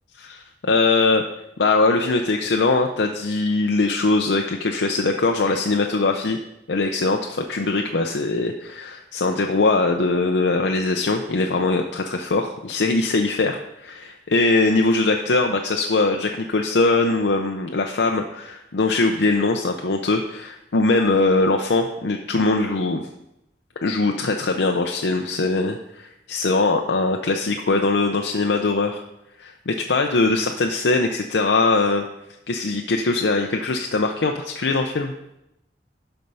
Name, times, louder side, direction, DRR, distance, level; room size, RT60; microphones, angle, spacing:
voice 1, 0.2-1.2 1.6-6.4 6.7-23.0 23.8-29.0 29.4-32.1 32.5-35.1, left 3 dB, 80° left, 3 dB, 0.6 m, -21 dB
12.0 x 4.5 x 5.5 m, 0.88 s
head